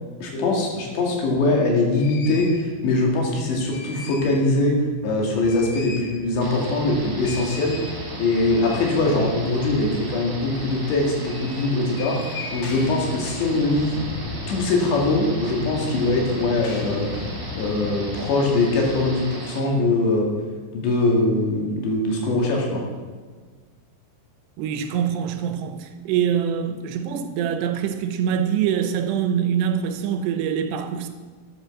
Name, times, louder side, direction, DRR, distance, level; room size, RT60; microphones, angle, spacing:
voice 1, 0.2-4.8 5.0-7.8 8.2-12.2 12.5-14.0 14.5-17.1 17.6-20.3 20.7-22.8, left 2 dB, 80° left, 4.4 m, -22 dB
sound 1, 1.3-1.4 1.9-2.6 3.4-4.5 4.8-4.9 5.2-19.1, left 4 dB, 65° left, 2.9 m, -37 dB
sound 2, 6.4-19.6, right 2 dB, 35° right, 2.8 m, -37 dB
voice 2, 24.6-31.1, right 8 dB, 80° right, 2.9 m, -24 dB
12.0 x 8.2 x 6.6 m
omnidirectional pair, 5.0 m